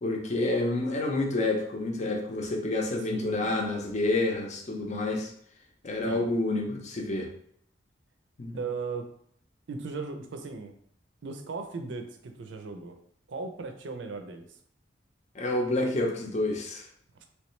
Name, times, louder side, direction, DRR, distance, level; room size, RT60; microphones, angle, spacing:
voice 1, 0.0-5.3 5.8-7.3 8.4-8.6 15.3-16.9, left 2 dB, 40° left, 1 dB, 0.6 m, -28 dB
voice 2, 3.1-3.5 6.0-6.2 8.6-9.1 9.7-10.7 11.2-13.0 13.3-14.4, right 4 dB, 85° right, 6 dB, 0.5 m, -37 dB
3.2 x 3.1 x 3.1 m, 0.66 s
head